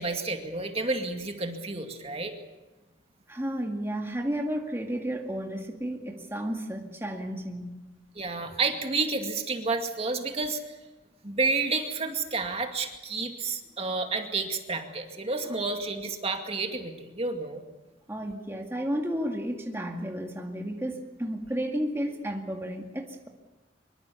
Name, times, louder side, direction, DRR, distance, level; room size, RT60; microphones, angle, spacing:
voice 1, 0.0-2.3 8.2-10.6 11.2-17.6, right 3 dB, 35° right, 4 dB, 2.3 m, -30 dB
voice 2, 3.3-7.8 15.4-15.6 18.1-23.3, equal, 15° right, 1 dB, 2.1 m, -32 dB
24.5 x 23.5 x 7.1 m, 1.1 s
head